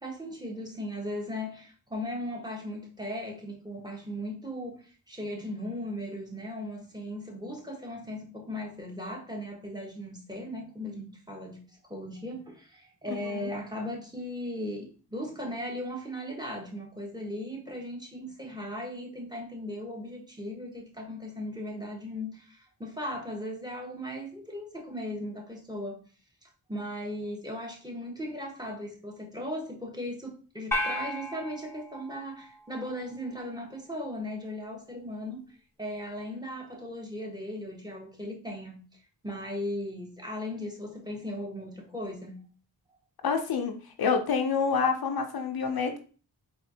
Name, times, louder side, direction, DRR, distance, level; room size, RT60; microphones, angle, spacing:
voice 1, 0.0-11.6 11.9-26.0 26.4-35.5 35.8-38.8 39.2-42.4, left 1 dB, 10° right, 1.3 m, -37 dB
voice 2, 13.1-13.5 43.2-43.7 44.0-46.0, left 5 dB, 65° left, 0.7 m, -27 dB
sound 1, 30.7-33.2, left 1 dB, 5° left, 1.0 m, -35 dB
4.2 x 2.6 x 2.8 m
cardioid pair, 45°, 40 cm